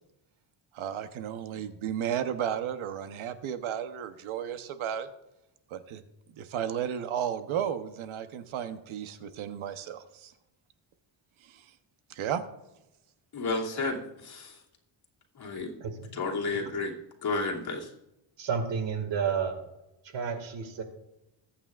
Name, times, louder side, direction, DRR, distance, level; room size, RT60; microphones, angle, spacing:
voice 1, 0.7-5.1 5.7-6.0 6.4-10.3 11.5-11.6 12.1-12.4, right 9 dB, 80° right, 9 dB, 1.1 m, -33 dB
voice 2, 13.3-14.6 15.4-15.7 16.1-16.9 17.2-17.9, left 3 dB, 50° left, -3 dB, 2.7 m, -32 dB
voice 3, 15.8-16.1 16.5-16.6 18.4-19.5 20.0-20.8, right 6 dB, 65° right, 6 dB, 2.2 m, -31 dB
21.5 x 8.7 x 2.5 m, 0.91 s
cardioid pair, 135°, 48 cm